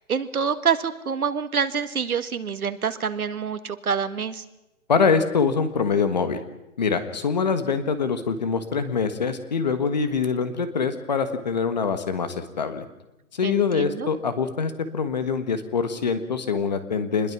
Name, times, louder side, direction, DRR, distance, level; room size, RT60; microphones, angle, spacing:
voice 1, 0.0-4.4 13.4-14.1, right 6 dB, 75° right, 11 dB, 1.8 m, -26 dB
voice 2, 4.9-6.4 6.8-12.9 13.3-17.3, left 5 dB, 30° left, 10 dB, 1.4 m, -24 dB
26.0 x 21.0 x 6.1 m, 0.93 s
hypercardioid pair, 175°, 44 cm